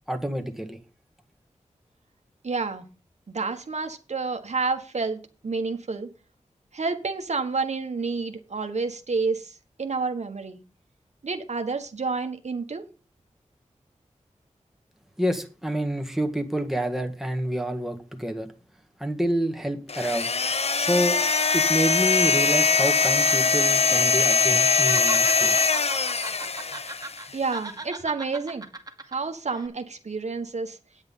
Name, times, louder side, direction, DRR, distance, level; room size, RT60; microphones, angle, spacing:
voice 1, 0.1-0.8 15.2-18.5 19.0-20.3 20.8-21.2 21.5-25.6, equal, ahead, 1.8 m, -28 dB
voice 2, 2.4-2.9 3.3-6.1 6.7-10.6 11.2-12.9 27.3-28.7 29.1-30.8, right 4 dB, 60° right, 1.3 m, -29 dB
sound 1, 19.9-27.3, left 4 dB, 55° left, 0.8 m, -22 dB
Laughter, 23.8-24.3 24.6-27.3 27.5-29.2 29.5-29.7, right 2 dB, 30° right, 2.0 m, -37 dB
9.4 x 8.0 x 5.5 m
cardioid pair, 55°, 13 cm